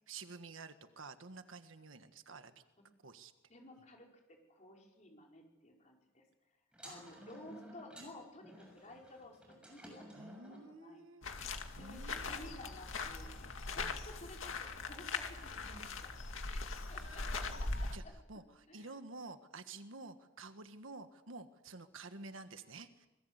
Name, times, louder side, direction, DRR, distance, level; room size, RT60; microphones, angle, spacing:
voice 1, 0.1-2.5 3.0-3.3 6.8-7.5 10.1-11.2 11.8-12.6 13.8-14.0 16.8-17.6 17.9-18.0 18.3-23.1, right 3 dB, 75° right, 9 dB, 1.6 m, -51 dB
voice 2, 3.5-6.2 6.8-10.2 10.5-11.0 11.5-16.1 16.5-18.1 18.7-18.9, left 1 dB, 35° left, 0 dB, 5.4 m, -54 dB
sound 1, 6.7-10.7, equal, 5° right, 6.8 m, -54 dB
sound 2, 11.2-18.0, left 3 dB, 75° left, 2.2 m, -41 dB
26.0 x 21.5 x 8.2 m, 1.0 s
head